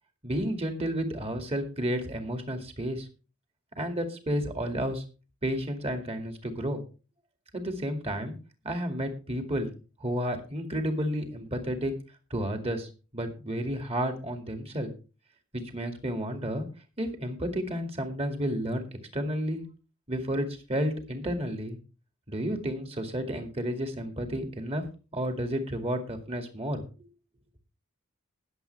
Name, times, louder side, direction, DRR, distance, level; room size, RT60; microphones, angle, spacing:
voice 1, 0.2-3.1 3.8-5.0 5.4-6.8 7.5-8.3 8.6-9.7 10.0-12.0 12.3-14.9 15.5-16.7 17.0-18.8 19.1-19.6 20.1-21.8 22.3-24.8 25.1-26.8, equal, 25° right, 6 dB, 2.2 m, -31 dB
20.0 x 7.5 x 3.4 m, 0.33 s
head